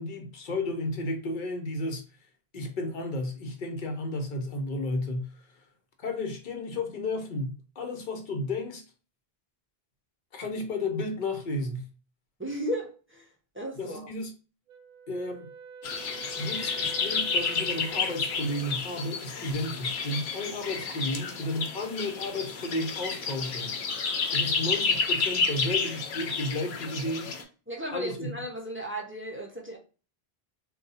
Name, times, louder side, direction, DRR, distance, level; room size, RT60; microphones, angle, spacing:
voice 1, 0.0-2.0 2.5-5.7 6.0-8.8 10.3-11.9 13.7-14.3 15.1-15.5 16.4-23.7 24.3-27.3 27.9-28.3, left 2 dB, 55° left, 0.8 m, -33 dB
voice 2, 12.4-13.2 13.5-14.1 27.7-29.8, right 1 dB, 15° right, 0.5 m, -35 dB
Wind instrument woodwind instrument, 14.7-18.7, right 6 dB, 60° right, 0.6 m, -46 dB
sound 1, 15.8-27.4, left 5 dB, 80° left, 0.9 m, -30 dB
2.6 x 2.3 x 3.9 m
omnidirectional pair, 1.1 m